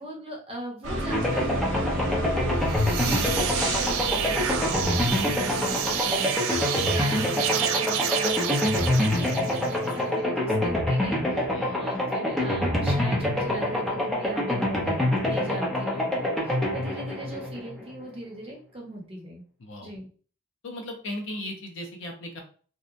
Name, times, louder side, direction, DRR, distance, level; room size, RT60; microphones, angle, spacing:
voice 1, 0.0-19.4 19.8-20.1, equal, 30° right, -1 dB, 0.8 m, -39 dB
sound 1, 0.8-6.3, right 1 dB, 65° right, 0.7 m, -31 dB
sound 2, 1.1-18.0, left 1 dB, ahead, 0.6 m, -26 dB
sound 3, 2.5-10.0, right 9 dB, 85° right, 0.3 m, -30 dB
voice 2, 3.0-3.3 11.5-11.7 19.6-19.9 20.6-22.4, left 1 dB, 65° left, 2 dB, 0.7 m, -36 dB
2.8 x 2.1 x 2.5 m, 0.41 s
head